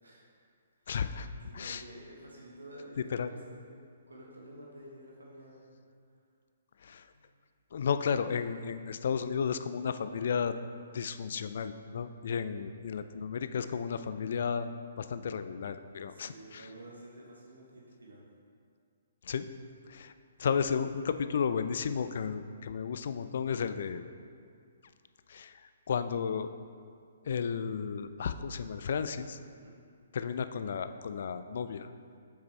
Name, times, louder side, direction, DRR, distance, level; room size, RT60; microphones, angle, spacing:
voice 1, 0.9-1.3 1.5-1.8 3.1-3.3 6.8-7.0 7.7-10.5 10.9-14.7 15.0-16.7 19.2-19.5 19.9-20.1 20.4-24.0 25.3-25.6 25.9-26.5 27.3-29.4 30.1-31.9, left 6 dB, 60° left, 11 dB, 0.3 m, -33 dB
voice 2, 1.4-5.7 7.1-7.2 12.5-12.6 16.0-18.2 29.6-29.8, right 1 dB, 80° right, -3 dB, 1.2 m, -50 dB
8.1 x 5.9 x 3.2 m, 2.2 s
figure-of-eight pair, 130°, 0 cm